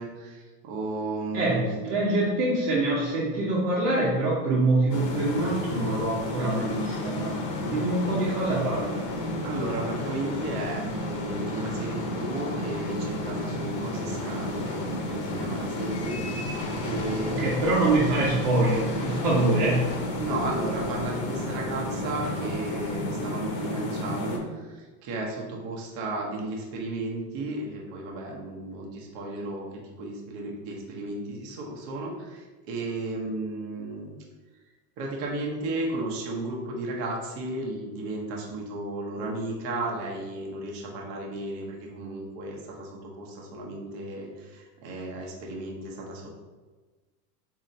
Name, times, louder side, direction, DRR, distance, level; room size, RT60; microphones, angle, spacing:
voice 1, 0.0-1.8 9.4-17.5 20.2-29.7 30.0-34.2 35.0-46.3, right 2 dB, 45° right, -2 dB, 0.8 m, -34 dB
voice 2, 1.3-9.0 17.3-19.9, right 2 dB, 80° right, -7 dB, 1.0 m, -25 dB
sound 1, 4.9-24.4, left 1 dB, 50° left, 0.8 m, -32 dB
4.1 x 2.8 x 2.6 m, 1.3 s
supercardioid pair, 125°, 48 cm